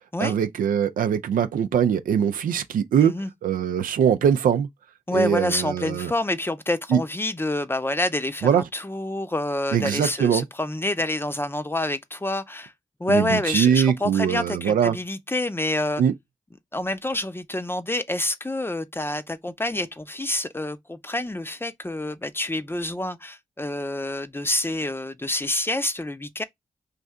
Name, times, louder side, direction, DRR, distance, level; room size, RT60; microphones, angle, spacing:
voice 1, 0.2-3.1 3.4-4.7 5.1-6.1 6.9-7.0 8.4-8.6 9.7-10.4 13.1-15.0 16.0-16.1, right 8 dB, 85° right, 0.4 m, -22 dB
voice 2, 5.1-12.7 13.0-16.0 16.7-26.4, left 1 dB, 15° left, 0.6 m, -27 dB
3.2 x 2.6 x 3.5 m
cardioid pair, 45°, 14 cm